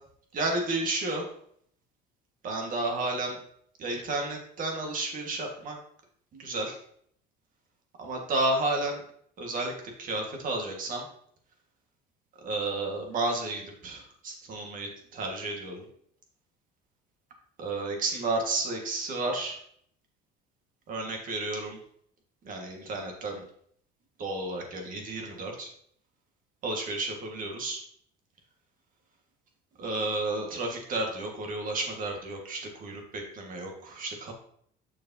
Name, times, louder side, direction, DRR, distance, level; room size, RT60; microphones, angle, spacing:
voice 1, 0.3-1.3 2.4-3.4 3.8-5.8 6.3-6.8 8.0-9.0 9.4-11.0 12.4-15.8 17.6-19.6 20.9-21.8 22.4-23.4 24.2-25.7 26.6-27.8 29.8-34.3, right 2 dB, 40° right, 2 dB, 1.7 m, -32 dB
6.9 x 6.4 x 2.8 m, 0.64 s
cardioid pair, 145°, 21 cm